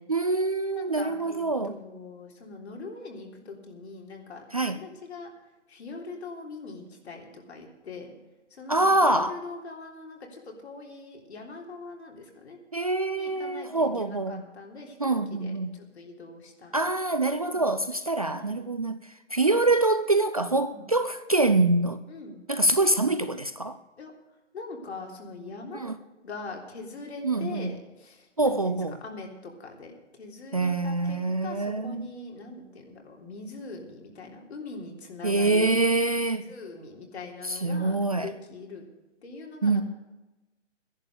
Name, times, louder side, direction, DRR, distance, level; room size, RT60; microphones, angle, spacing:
voice 1, 0.1-1.8 4.5-4.8 8.7-9.4 12.7-14.4 15.0-15.8 16.7-22.0 22.5-23.8 25.7-26.0 27.2-27.7 28.4-29.0 30.5-32.1 35.2-36.4 37.4-38.3 39.6-39.8, right 2 dB, 30° right, 0.4 m, -25 dB
voice 2, 0.8-5.3 5.7-8.1 8.5-12.6 13.2-16.8 17.1-17.6 18.2-18.6 20.7-20.9 22.1-22.5 24.0-24.1 24.5-25.8 26.2-28.7 29.0-35.7 36.5-38.8 39.2-39.8, left 3 dB, 60° left, 3.6 m, -42 dB
14.0 x 11.0 x 6.7 m
hypercardioid pair, 155°, 36 cm